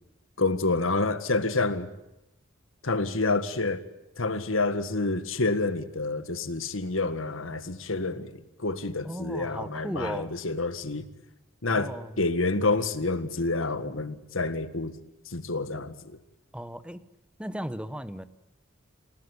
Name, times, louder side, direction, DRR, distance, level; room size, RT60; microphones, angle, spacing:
voice 1, 0.4-1.9 2.8-3.8 4.2-11.1 11.6-14.9 15.3-15.9, left 3 dB, 80° left, 1.8 m, -28 dB
voice 2, 9.0-10.3 11.7-12.2 16.5-17.0 17.4-18.2, equal, 5° right, 1.0 m, -36 dB
28.5 x 17.5 x 9.8 m
head